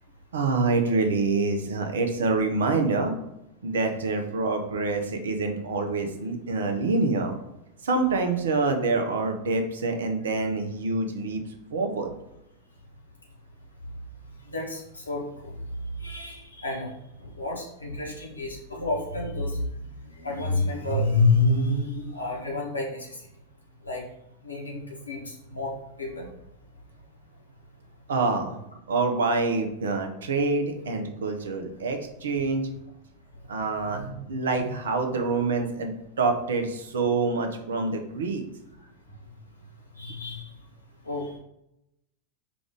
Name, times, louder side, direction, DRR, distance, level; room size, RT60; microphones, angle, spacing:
voice 1, 0.3-3.1 3.6-7.4 7.8-11.4 11.7-12.1 28.1-28.6 28.9-32.6 33.5-34.0 34.3-38.4, right 3 dB, 65° right, 5 dB, 0.6 m, -26 dB
voice 2, 14.4-15.2 16.0-16.9 17.2-19.7 20.2-23.2 23.8-24.0 24.4-25.7 26.0-26.3 33.8-34.2 34.5-34.7 40.0-40.5 41.0-41.3, left 2 dB, 80° left, -2 dB, 1.1 m, -28 dB
4.9 x 2.5 x 3.4 m, 0.83 s
figure-of-eight pair, 90°, 0 cm